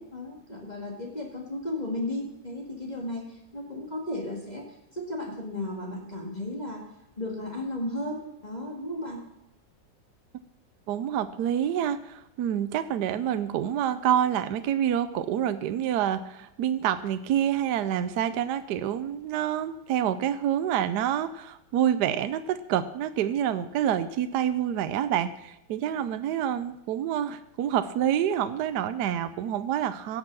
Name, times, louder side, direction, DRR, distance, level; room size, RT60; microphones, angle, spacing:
voice 1, 0.0-4.7 4.9-6.8 7.2-9.2, left 1 dB, 25° left, 0 dB, 2.1 m, -34 dB
voice 2, 10.9-30.2, right 10 dB, 70° right, 12 dB, 1.1 m, -27 dB
17.0 x 6.9 x 6.0 m, 0.86 s
omnidirectional pair, 1.9 m